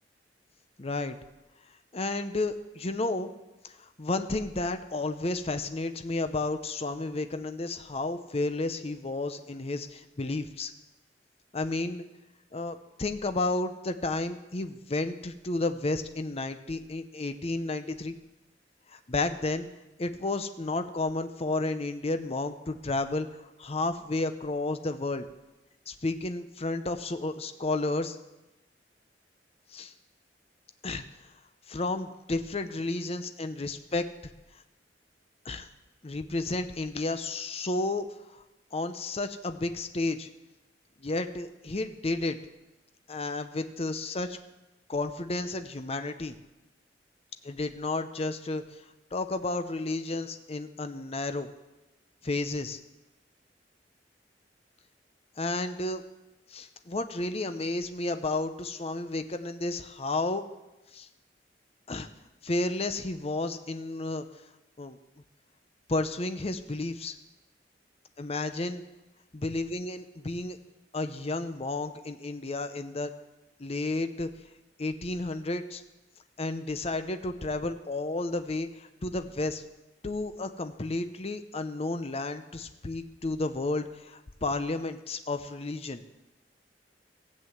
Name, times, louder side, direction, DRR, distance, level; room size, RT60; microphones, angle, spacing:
voice 1, 0.8-1.2 1.9-3.3 3.6-10.7 11.5-12.0 12.5-18.2 18.9-19.7 20.0-25.3 25.9-28.2 29.7-29.9 30.8-31.0 31.7-34.1 34.5-34.6 35.4-35.7 36.0-38.1 38.3-38.4 38.7-40.3 41.0-42.4 43.1-44.4 44.9-46.4 47.4-48.8 49.1-51.5 52.2-52.8 55.4-56.0 56.5-60.4 60.9-61.1 61.9-62.1 62.4-64.2 64.8-65.0 65.9-67.2 68.2-68.8 69.3-70.6 70.9-73.1 73.6-74.3 74.8-75.8 76.4-79.6 80.0-86.0, left 2 dB, 35° left, 9 dB, 0.7 m, -32 dB
15.5 x 7.8 x 7.8 m, 1.0 s
head